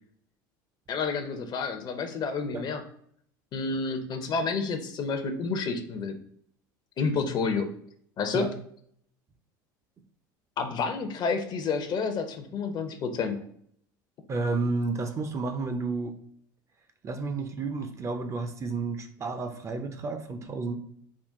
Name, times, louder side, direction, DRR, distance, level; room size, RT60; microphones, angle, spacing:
voice 1, 0.9-2.8 3.5-6.2 7.0-7.7 8.2-8.5 10.6-13.5, left 4 dB, 40° left, 8 dB, 0.6 m, -29 dB
voice 2, 14.3-16.2 17.0-20.8, right 3 dB, 30° right, 7 dB, 0.5 m, -31 dB
3.7 x 2.4 x 3.4 m, 0.65 s
supercardioid pair, 95°, 11 cm